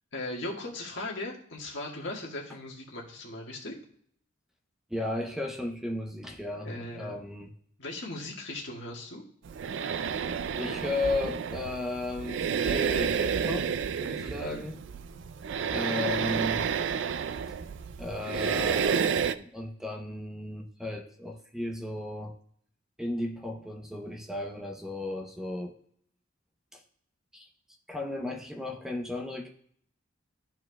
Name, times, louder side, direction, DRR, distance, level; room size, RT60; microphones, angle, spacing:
voice 1, 0.1-3.7 6.6-7.2 7.8-9.2 14.2-14.6, left 2 dB, 70° left, -2 dB, 1.7 m, -38 dB
voice 2, 4.9-7.5 10.6-13.7 14.0-14.8 15.7-16.7 18.0-22.3 23.0-25.8 26.7-26.8 27.3-27.5 27.9-29.5, left 2 dB, 5° right, 2 dB, 0.7 m, -35 dB
sound 1, 9.4-19.3, right 7 dB, 65° right, 0.4 m, -30 dB
13.0 x 4.5 x 2.3 m, 0.64 s
head